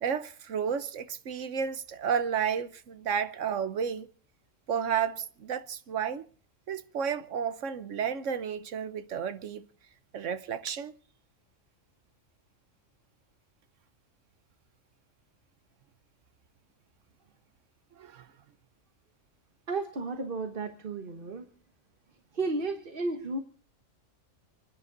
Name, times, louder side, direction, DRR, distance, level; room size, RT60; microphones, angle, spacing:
voice 1, 0.0-4.1 4.7-6.3 6.7-9.6 10.1-11.0 18.0-18.3, right 7 dB, 70° right, 1.2 m, -32 dB
voice 2, 19.7-21.4 22.3-23.4, right 3 dB, 45° right, 1.4 m, -33 dB
29.5 x 10.0 x 3.9 m
omnidirectional pair, 1.3 m